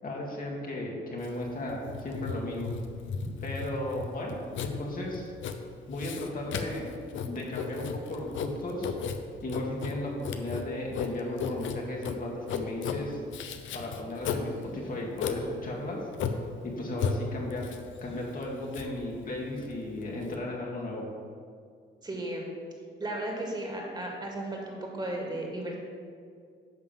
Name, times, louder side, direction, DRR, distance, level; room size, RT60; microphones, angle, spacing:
voice 1, 0.0-2.7 3.4-5.3 5.9-6.9 7.3-8.9 9.4-13.5 13.7-16.0 16.3-17.7 18.0-21.1, left 1 dB, 45° left, -2 dB, 2.0 m, -35 dB
Writing, 1.2-20.4, left 6 dB, 75° left, 0.8 m, -36 dB
voice 2, 22.0-22.5 23.0-25.7, right 1 dB, 20° right, -1 dB, 2.3 m, -35 dB
10.5 x 3.7 x 7.4 m, 2.2 s
cardioid pair, 90°, 20 cm